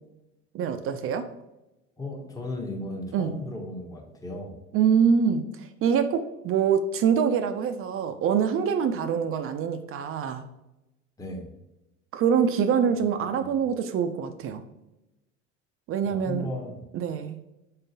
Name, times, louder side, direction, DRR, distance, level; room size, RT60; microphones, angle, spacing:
voice 1, 0.5-1.2 3.1-3.4 4.7-10.4 12.1-14.6 15.9-16.5 16.9-17.4, right 7 dB, 40° right, 8 dB, 0.4 m, -25 dB
voice 2, 2.0-4.6 11.2-11.5 13.0-13.5 16.0-16.8, left 1 dB, 10° left, 1 dB, 0.8 m, -36 dB
3.7 x 3.6 x 2.7 m, 0.95 s
hypercardioid pair, 80°, 33 cm